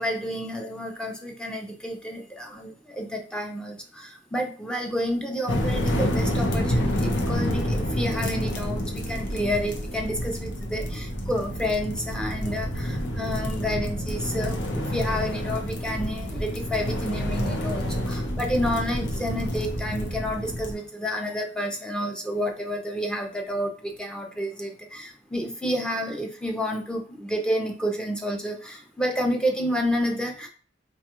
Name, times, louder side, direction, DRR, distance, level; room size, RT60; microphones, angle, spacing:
voice 1, 0.0-30.5, equal, 5° left, 1 dB, 0.5 m, -30 dB
sound 1, 5.5-20.7, equal, 90° left, 0.8 m, -28 dB
4.0 x 2.3 x 2.9 m, 0.42 s
head